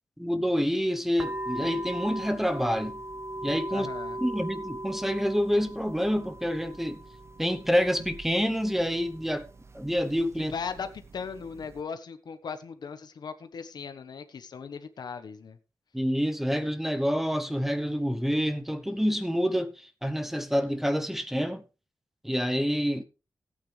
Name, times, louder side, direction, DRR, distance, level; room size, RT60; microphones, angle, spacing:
voice 1, 0.2-3.0 3.4-3.9 4.2-7.0 7.4-9.5 9.7-10.5 15.9-21.6 22.2-23.0, equal, 5° right, 1.0 m, -27 dB
sound 1, 1.2-11.8, right 1 dB, 40° right, 0.9 m, -40 dB
voice 2, 3.7-4.2 10.4-15.6, left 6 dB, 80° left, 1.2 m, -38 dB
16.5 x 8.7 x 3.4 m
wide cardioid pair, 145°, 7 cm